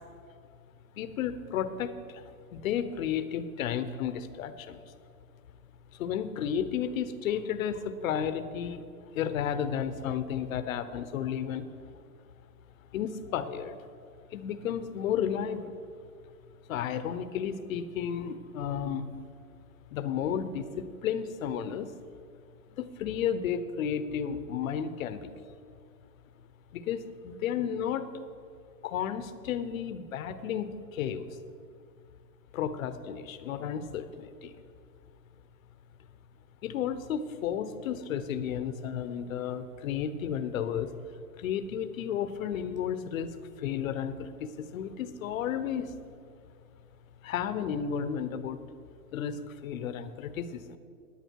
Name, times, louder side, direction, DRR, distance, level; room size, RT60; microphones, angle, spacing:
voice 1, 1.0-2.2 2.5-4.8 5.9-8.8 9.1-11.7 12.9-13.8 14.3-15.7 16.7-19.1 19.9-21.9 22.7-25.3 26.7-28.2 28.8-31.3 32.5-34.5 36.6-40.9 41.4-43.3 43.6-45.9 47.2-48.6 49.1-50.8, left 8 dB, 60° left, 12 dB, 1.0 m, -33 dB
16.5 x 10.5 x 4.6 m, 2.3 s
hypercardioid pair, 150°, 48 cm